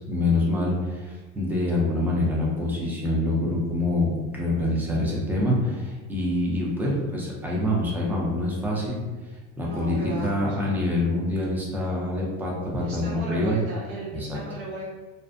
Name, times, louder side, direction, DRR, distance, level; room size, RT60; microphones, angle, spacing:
voice 1, 0.1-9.0 9.6-13.6 14.1-14.4, left 1 dB, 5° right, -4 dB, 0.3 m, -26 dB
voice 2, 9.6-10.5 12.8-14.8, right 2 dB, 65° right, -6 dB, 0.8 m, -36 dB
2.5 x 2.0 x 2.4 m, 1.3 s
supercardioid pair, 130°, 37 cm